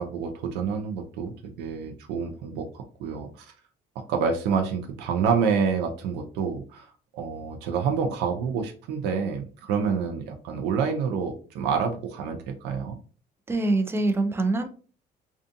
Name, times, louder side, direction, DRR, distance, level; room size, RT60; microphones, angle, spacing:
voice 1, 0.0-1.3 1.6-3.5 4.1-13.0, right 6 dB, 90° right, 4 dB, 0.4 m, -28 dB
voice 2, 13.5-14.7, right 2 dB, 15° right, 8 dB, 0.4 m, -24 dB
2.5 x 2.4 x 2.5 m, 0.39 s
cardioid pair, 110°, 17 cm